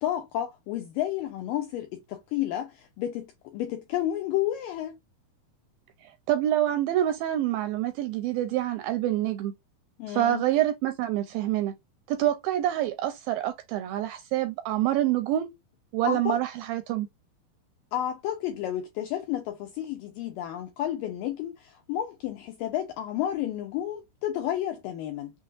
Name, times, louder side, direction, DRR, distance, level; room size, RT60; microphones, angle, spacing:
voice 1, 0.0-5.0 10.0-10.4 16.0-16.4 17.9-25.3, left 12 dB, 90° left, 2.0 m, -31 dB
voice 2, 6.0-9.5 10.1-11.7 12.1-15.5 15.9-17.1, right 13 dB, 80° right, 2.1 m, -27 dB
6.3 x 2.3 x 2.4 m
omnidirectional pair, 4.6 m